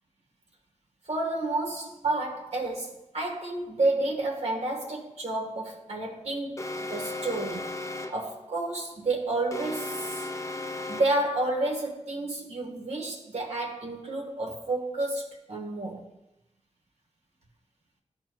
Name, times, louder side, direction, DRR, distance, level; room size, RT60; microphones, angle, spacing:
voice 1, 1.0-7.7 8.1-10.3 10.9-16.1, right 2 dB, 75° right, 1.2 m, -30 dB
Alarm, 6.6-8.3 9.5-11.3, left 2 dB, 25° left, 0.5 m, -35 dB
12.0 x 4.4 x 2.2 m
cardioid pair, 60°, 11 cm